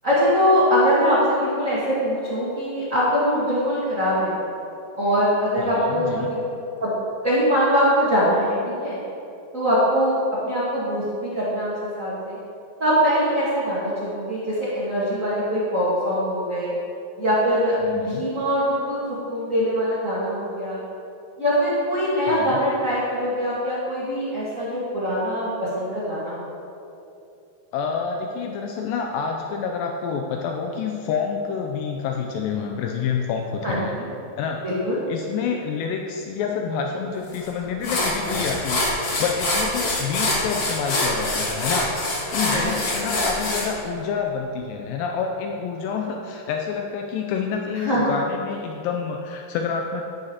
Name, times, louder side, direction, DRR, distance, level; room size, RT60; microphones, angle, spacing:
voice 1, 0.0-4.3 4.9-6.4 6.8-6.9 7.2-9.0 9.5-10.1 10.4-12.4 12.8-16.7 17.2-20.8 21.4-26.5 33.6-34.1 34.6-35.0 42.5-42.7 47.8-48.1, equal, 80° right, -10 dB, 0.7 m, -22 dB
voice 2, 5.6-6.3 17.8-18.3 22.3-22.6 27.7-34.0 34.4-34.6 35.1-50.0, left 6 dB, 85° left, 2 dB, 2.0 m, -28 dB
sound 1, 37.3-37.5 37.8-43.7, left 2 dB, 55° left, 1.7 m, -25 dB
11.0 x 9.8 x 2.9 m, 2.8 s
omnidirectional pair, 4.5 m